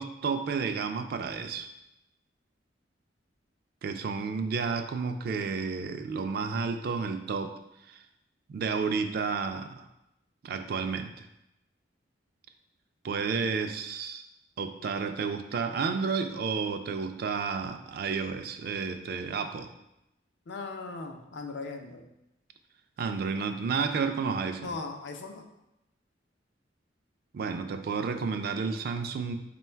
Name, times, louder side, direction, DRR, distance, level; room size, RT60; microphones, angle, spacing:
voice 1, 0.0-1.7 3.8-7.6 7.9-8.0 8.5-9.9 10.4-11.3 13.0-14.2 14.6-19.7 23.0-24.8 27.3-29.4, right 5 dB, 55° right, 7 dB, 0.3 m, -31 dB
voice 2, 20.5-22.1 24.6-25.4, left 3 dB, 70° left, 3 dB, 0.5 m, -38 dB
3.8 x 2.3 x 4.3 m, 0.86 s
head